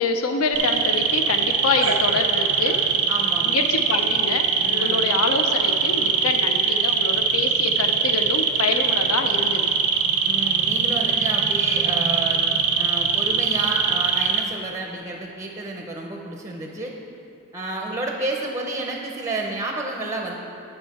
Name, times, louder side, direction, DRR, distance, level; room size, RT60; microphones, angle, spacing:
voice 1, 0.0-2.8 3.4-9.7, left 4 dB, 70° left, 5 dB, 0.5 m, -26 dB
sound 1, 0.6-14.4, right 6 dB, 85° right, 0.6 m, -22 dB
voice 2, 3.1-3.6 4.6-5.0 10.2-12.4 12.8-16.9 17.5-20.4, right 2 dB, 15° right, 1 dB, 0.6 m, -30 dB
10.5 x 5.5 x 4.2 m, 2.8 s
head